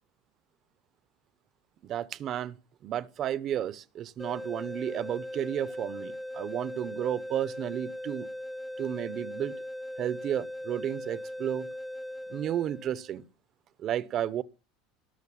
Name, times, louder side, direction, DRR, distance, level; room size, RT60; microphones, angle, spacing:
voice 1, 1.8-2.6 2.8-8.3 8.8-9.5 10.0-11.7 12.3-13.2 13.8-14.4, right 10 dB, 35° right, 0.9 m, -32 dB
sound 1, 4.2-13.1, left 1 dB, ahead, 0.9 m, -39 dB
19.0 x 6.7 x 8.6 m
cardioid pair, 155°, 0 cm